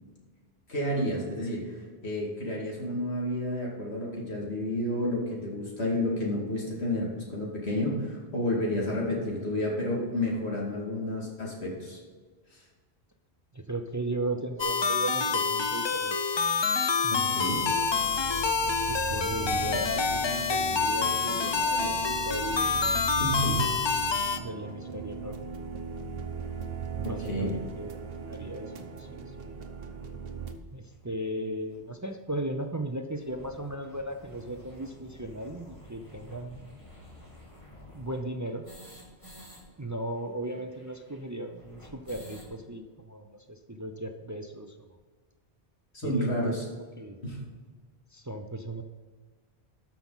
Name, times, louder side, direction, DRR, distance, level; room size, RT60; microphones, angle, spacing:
voice 1, 0.7-1.7 2.0-12.0 12.5-12.6 17.1-17.6 23.2-23.6 27.0-27.6 45.9-46.6 47.2-47.4, left 1 dB, 75° left, -3 dB, 2.6 m, -30 dB
voice 2, 13.5-16.2 17.0-17.6 18.9-22.9 23.2-23.6 24.4-25.4 27.0-29.6 30.7-36.8 37.9-38.7 39.8-44.9 46.0-46.6 47.0-47.2 48.1-48.8, right 1 dB, 25° right, 6 dB, 0.5 m, -37 dB
sound 1, 14.6-24.4, left 5 dB, 45° left, 0.3 m, -27 dB
sound 2, 17.5-30.5, right 6 dB, 65° right, 1.1 m, -39 dB
sound 3, 30.9-31.0 31.7-31.8 32.1-32.2 32.4-32.5 32.9-39.6 39.9-40.0 40.2-42.5, left 1 dB, 30° left, 2.8 m, -51 dB
13.0 x 5.8 x 4.0 m, 1.5 s
omnidirectional pair, 1.1 m